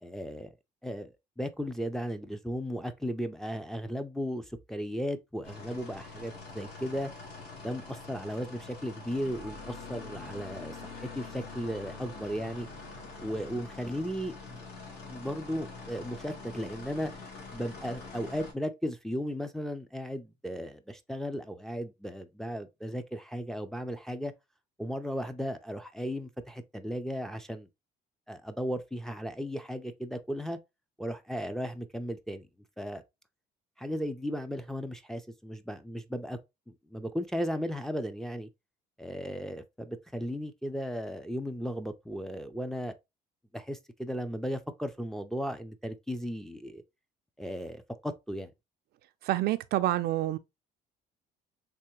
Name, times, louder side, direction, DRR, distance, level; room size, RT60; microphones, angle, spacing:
voice 1, 0.0-0.5 0.8-7.1 7.6-12.7 13.2-14.6 15.1-17.1 17.5-24.3 24.8-27.7 28.3-30.6 31.0-32.5 32.8-33.0 33.8-36.4 36.7-38.5 39.0-42.9 43.5-46.8 47.4-48.5, equal, 5° left, 0.4 m, -36 dB
sound 1, 5.4-18.5, left 3 dB, 70° left, 1.4 m, -45 dB
voice 2, 49.2-50.4, right 15 dB, 70° right, 0.4 m, -27 dB
3.4 x 3.0 x 2.9 m
cardioid pair, 110°, 17 cm